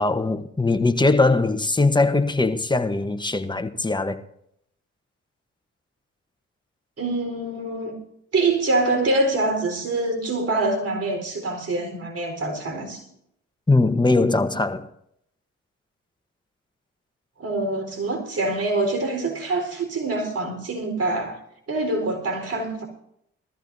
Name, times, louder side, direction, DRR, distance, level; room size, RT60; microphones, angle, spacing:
voice 1, 0.0-4.2 13.7-14.9, left 3 dB, 15° left, 1.1 m, -21 dB
voice 2, 7.0-8.0 8.3-13.1 17.4-21.4 21.7-22.9, right 2 dB, 55° right, 4.4 m, -25 dB
20.5 x 14.0 x 2.7 m
supercardioid pair, 55°, 29 cm